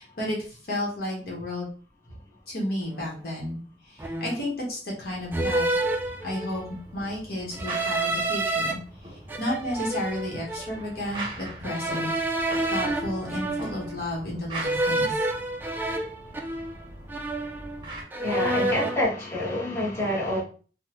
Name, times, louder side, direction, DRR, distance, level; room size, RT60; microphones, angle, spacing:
voice 1, 0.0-1.7 2.5-5.7 6.2-12.1 12.7-15.3, left 1 dB, 60° left, 1.1 m, -32 dB
sound 1, 2.9-3.1 4.0-4.5 5.3-6.7 7.5-8.7 9.3-10.8 11.6-14.0 14.6-16.8 17.1-17.8 18.1-19.0, right 2 dB, 10° right, 0.3 m, -29 dB
sound 2, 5.0-18.0, right 2 dB, 25° right, 0.8 m, -42 dB
voice 2, 18.2-20.4, left 1 dB, 15° left, 1.2 m, -27 dB
3.5 x 2.1 x 2.9 m
head